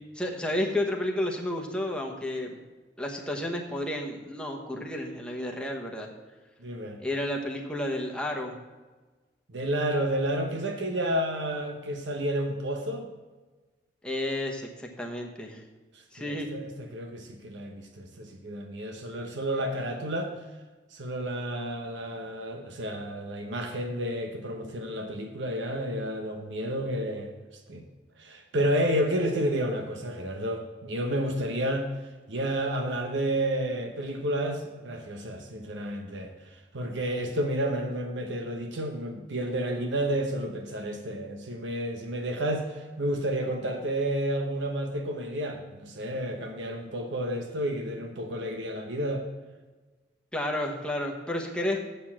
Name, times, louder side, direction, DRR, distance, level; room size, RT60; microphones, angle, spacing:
voice 1, 0.1-2.6 3.0-6.1 7.0-8.5 14.0-15.6 16.1-16.5 50.3-51.8, left 1 dB, 5° left, 0 dB, 1.1 m, -31 dB
voice 2, 6.6-7.0 9.5-13.1 15.9-20.3 20.9-27.3 27.7-27.8 28.2-31.9 32.3-49.3, right 1 dB, 80° right, 4 dB, 0.9 m, -31 dB
7.7 x 6.7 x 7.3 m, 1.3 s
head